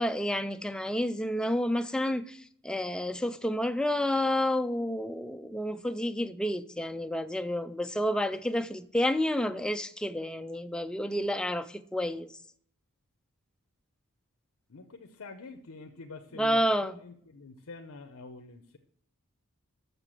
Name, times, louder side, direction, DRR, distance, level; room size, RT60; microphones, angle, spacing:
voice 1, 0.0-12.3 16.4-17.0, equal, 5° left, 0.3 m, -30 dB
voice 2, 14.7-18.8, left 3 dB, 65° left, 0.7 m, -47 dB
6.8 x 6.6 x 7.5 m
head